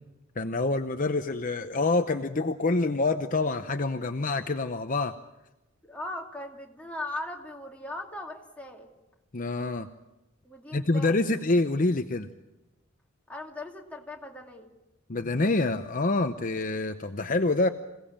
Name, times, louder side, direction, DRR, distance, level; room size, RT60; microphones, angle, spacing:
voice 1, 0.4-5.1 9.3-9.9 10.7-12.3 15.1-17.7, left 2 dB, 40° left, 7 dB, 0.9 m, -26 dB
voice 2, 5.8-8.9 10.4-11.2 13.3-14.7, left 1 dB, 5° left, 0 dB, 2.7 m, -39 dB
27.0 x 17.5 x 8.8 m, 0.97 s
head